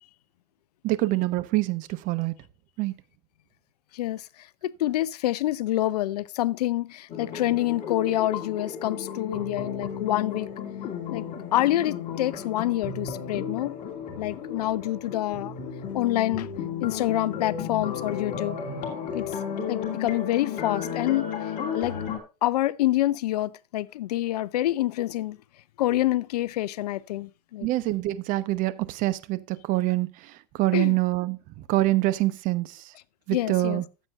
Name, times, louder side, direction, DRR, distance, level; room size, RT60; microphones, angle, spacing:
voice 1, 0.8-2.3 2.8-2.9 27.6-32.8 33.3-33.8, right 17 dB, 40° right, 1.0 m, -25 dB
voice 2, 3.9-10.5 11.1-11.2 11.5-13.7 14.2-15.5 15.9-16.5 16.8-18.6 19.1-19.3 19.7-21.3 21.7-21.9 22.4-25.4 25.8-27.7 30.7-31.0 33.3-33.8, left 15 dB, 70° left, 0.5 m, -27 dB
sound 1, 7.1-22.2, left 7 dB, 35° left, 2.7 m, -34 dB
15.0 x 7.6 x 2.4 m
hypercardioid pair, 115°, 21 cm